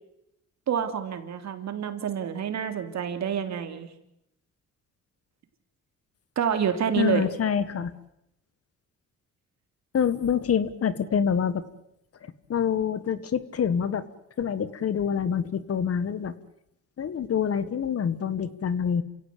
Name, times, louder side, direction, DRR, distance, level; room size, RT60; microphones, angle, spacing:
voice 1, 0.7-3.9 6.3-7.3, right 8 dB, 65° right, 7 dB, 3.2 m, -28 dB
voice 2, 7.0-7.9 9.9-11.7 12.5-14.1 14.4-16.3 17.0-19.0, left 7 dB, 50° left, 14 dB, 1.7 m, -26 dB
28.5 x 17.0 x 8.6 m, 0.83 s
cardioid pair, 90°, 30 cm